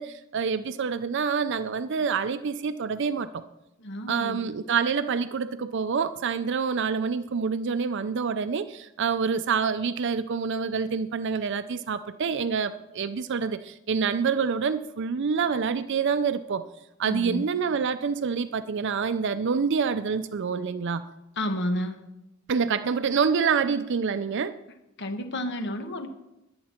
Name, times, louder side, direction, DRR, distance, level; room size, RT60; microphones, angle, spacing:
voice 1, 0.0-3.4 4.1-16.6 17.0-21.0 22.5-24.6, right 6 dB, 60° right, 11 dB, 0.5 m, -27 dB
voice 2, 3.8-4.5 17.0-17.5 21.4-22.0 25.0-26.1, left 1 dB, 60° left, 7 dB, 1.2 m, -31 dB
21.0 x 8.7 x 4.4 m, 0.91 s
head